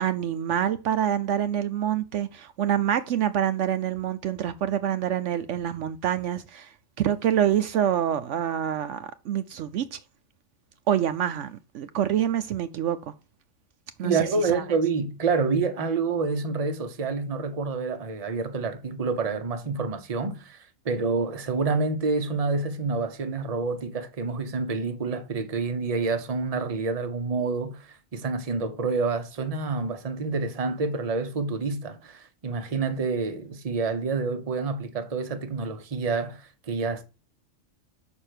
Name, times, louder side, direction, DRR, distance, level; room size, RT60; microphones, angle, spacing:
voice 1, 0.0-10.0 10.9-13.1 14.0-14.6, right 10 dB, 70° right, 0.9 m, -26 dB
voice 2, 14.0-37.0, right 4 dB, 35° right, 0.8 m, -28 dB
6.0 x 4.5 x 6.5 m
omnidirectional pair, 1.3 m